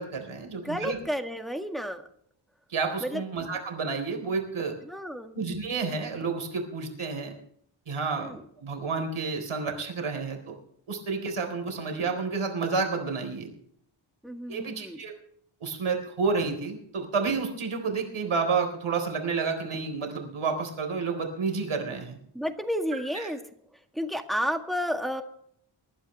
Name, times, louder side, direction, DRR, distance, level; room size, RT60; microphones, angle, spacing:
voice 1, 0.0-1.0 2.7-4.8 5.3-7.3 7.9-10.5 10.9-13.5 14.5-15.1 15.6-22.2 23.1-23.3, right 4 dB, 85° right, 4 dB, 4.1 m, -30 dB
voice 2, 0.6-2.0 3.0-3.2 4.9-5.3 8.2-8.4 14.2-15.0 22.3-23.4 23.9-25.2, equal, ahead, 5 dB, 1.7 m, -31 dB
23.5 x 12.0 x 3.3 m, 0.64 s
wide cardioid pair, 105°, 48 cm